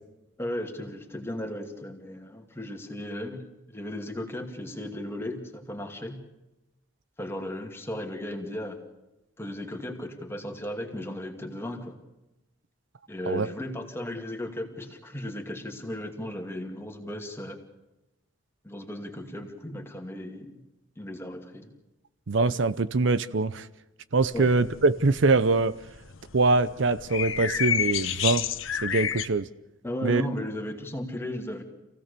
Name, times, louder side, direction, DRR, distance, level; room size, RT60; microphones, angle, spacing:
voice 1, 0.4-6.2 7.2-8.8 9.4-12.0 13.1-17.6 18.6-20.6 21.0-21.7 24.3-24.5 29.8-31.6, left 1 dB, 10° left, 3 dB, 2.4 m, -35 dB
voice 2, 22.3-23.7 24.1-25.8 26.3-28.5 28.8-29.5 30.0-30.2, right 3 dB, 65° right, 14 dB, 0.7 m, -23 dB
sound 1, 24.2-29.3, left 9 dB, 85° left, 1.1 m, -31 dB
27.0 x 17.0 x 6.8 m, 0.97 s
head